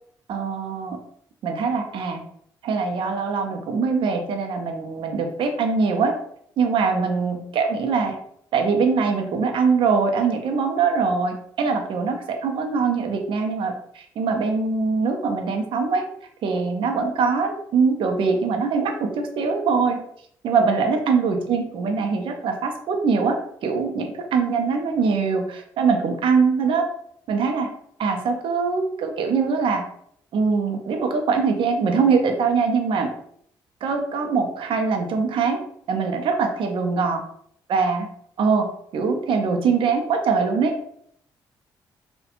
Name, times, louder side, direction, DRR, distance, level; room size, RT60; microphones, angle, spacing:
voice 1, 0.3-1.0 1.4-2.2 2.6-6.1 6.6-8.2 8.5-16.0 16.4-20.0 20.4-23.4 23.6-26.9 27.3-27.7 28.0-29.8 30.3-33.1 33.8-35.6 35.9-37.2 37.7-38.1 38.4-38.7 38.9-40.7, right 5 dB, 65° right, 4 dB, 0.4 m, -22 dB
2.4 x 2.1 x 2.8 m, 0.66 s
hypercardioid pair, 45°, 9 cm